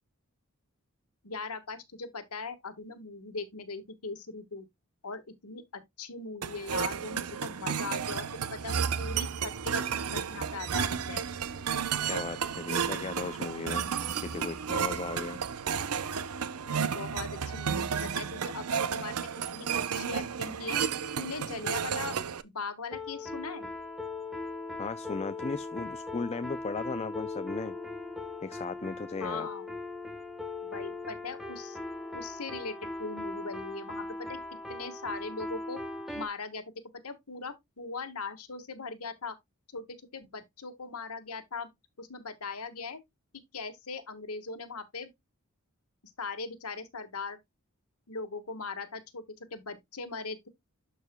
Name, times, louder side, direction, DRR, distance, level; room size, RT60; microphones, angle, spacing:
voice 1, 1.2-4.6 5.0-8.3 8.5-11.2 16.9-20.8 21.2-22.1 22.4-23.7 29.2-29.7 30.6-31.8 32.1-34.4 34.7-35.8 36.1-36.6 37.0-39.4 39.7-41.7 42.0-43.0 43.5-45.1 46.2-47.4 48.1-49.2 49.5-50.5, left 4 dB, 90° left, 1.5 m, -40 dB
sound 1, 6.4-22.4, right 7 dB, 85° right, 0.7 m, -32 dB
voice 2, 12.0-13.9 14.2-15.4 24.8-27.8 28.4-29.5, left 4 dB, 30° left, 0.4 m, -36 dB
sound 2, 22.9-36.3, left 2 dB, ahead, 1.2 m, -39 dB
12.0 x 4.8 x 2.2 m
head